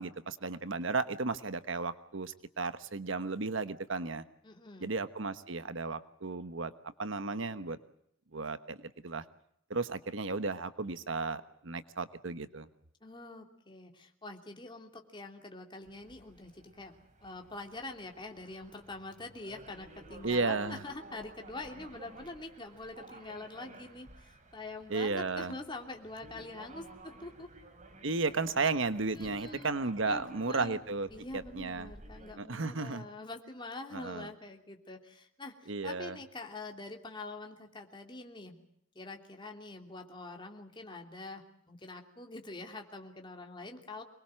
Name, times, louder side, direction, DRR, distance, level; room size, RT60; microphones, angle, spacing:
voice 1, 0.0-4.2 4.8-6.7 7.0-7.8 8.3-9.2 9.7-12.7 20.2-20.8 24.9-25.6 28.0-31.1 31.3-31.9 32.4-33.0 33.9-34.3 35.7-36.2, right 3 dB, 65° right, 12 dB, 1.2 m, -34 dB
voice 2, 4.4-4.9 13.0-16.9 17.2-27.5 29.1-29.7 30.0-30.8 31.1-38.6 38.9-44.0, left 2 dB, 25° left, 3 dB, 3.0 m, -45 dB
sound 1, 15.8-32.3, right 2 dB, 40° right, 3.6 m, -54 dB
25.0 x 21.5 x 7.7 m, 0.71 s
head